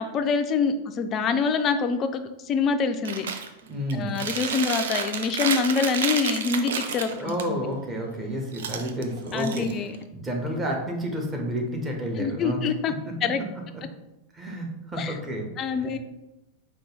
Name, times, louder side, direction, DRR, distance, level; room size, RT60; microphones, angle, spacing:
voice 1, 0.0-3.3 3.9-7.7 9.3-9.9 12.2-12.9 13.2-13.4 15.0-15.1 15.6-16.0, left 5 dB, 30° left, 8 dB, 0.3 m, -25 dB
Chewing mastication, 3.0-3.5 3.9-7.4 8.5-10.0, right 6 dB, 60° right, 0.3 m, -30 dB
voice 2, 3.6-4.1 7.1-9.7 10.1-12.6 12.9-13.0 14.3-15.5 15.8-15.9, equal, 20° right, 0 dB, 0.8 m, -30 dB
4.5 x 2.3 x 3.2 m, 0.93 s
figure-of-eight pair, 90°, 0 cm